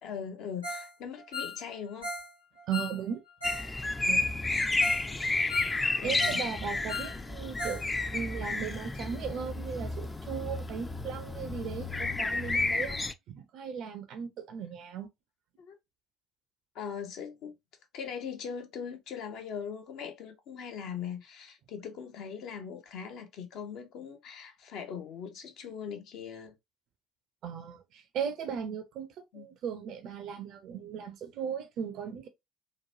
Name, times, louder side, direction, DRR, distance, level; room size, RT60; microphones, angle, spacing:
voice 1, 0.0-2.1 6.0-6.4 15.6-15.8 16.7-17.5 17.9-26.5 29.3-29.5, left 7 dB, 55° left, 0.6 m, -40 dB
Ringtone, 0.6-3.7 4.0-4.1 4.5-4.6 4.8-5.1 5.3-6.5 6.7-8.2 8.7-8.8, left 2 dB, 90° left, 0.8 m, -38 dB
voice 2, 2.7-3.2 4.1-4.3 6.0-7.9 8.1-13.0 13.3-15.1 27.4-29.1 29.3-32.3, right 7 dB, 55° right, 0.4 m, -37 dB
sound 1, 3.4-13.1, left 3 dB, 20° left, 0.3 m, -31 dB
3.0 x 2.2 x 2.6 m
figure-of-eight pair, 55°, 0 cm